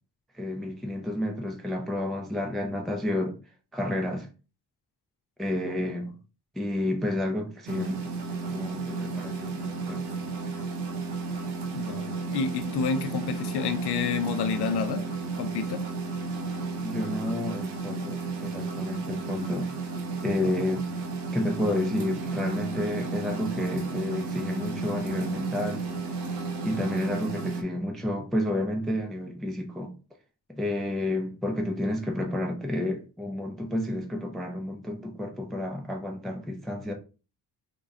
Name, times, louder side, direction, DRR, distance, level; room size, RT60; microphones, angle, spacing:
voice 1, 0.3-3.4 3.7-4.3 5.4-6.1 6.6-10.2 16.8-19.7 20.2-20.9 21.3-25.8 26.6-29.9 30.5-36.9, left 1 dB, ahead, 0.5 m, -30 dB
sound 1, 7.7-27.6, right 4 dB, 80° right, 0.8 m, -33 dB
voice 2, 11.7-15.1 15.4-15.9 20.4-20.5, left 6 dB, 75° left, 0.6 m, -29 dB
3.9 x 2.2 x 3.4 m
cardioid pair, 105°, 40 cm